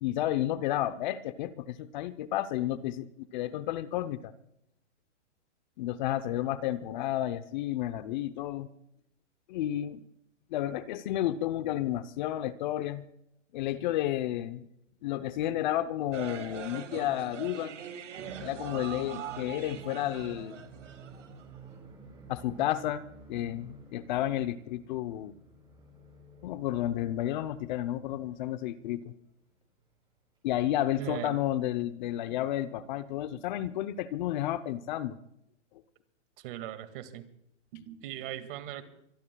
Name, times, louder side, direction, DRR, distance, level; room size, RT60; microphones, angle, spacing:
voice 1, 0.0-4.3 5.8-8.7 9.5-10.0 10.5-13.1 13.5-14.7 15.0-17.7 18.4-20.6 22.3-23.0 23.3-25.3 26.4-29.1 30.4-35.2, left 13 dB, 40° left, 13 dB, 0.8 m, -31 dB
sound 1, 16.1-21.6, right 9 dB, 80° right, 2.2 m, -42 dB
sound 2, 18.2-29.2 29.5-29.6 30.8-30.9 32.3-32.4 34.0-34.1, right 3 dB, 10° right, 7.9 m, -51 dB
voice 2, 31.0-31.4 33.3-33.4 36.4-37.3 37.7-38.8, right 12 dB, 45° right, 10 dB, 2.1 m, -39 dB
24.5 x 22.5 x 2.3 m, 0.78 s
hypercardioid pair, 140°, 36 cm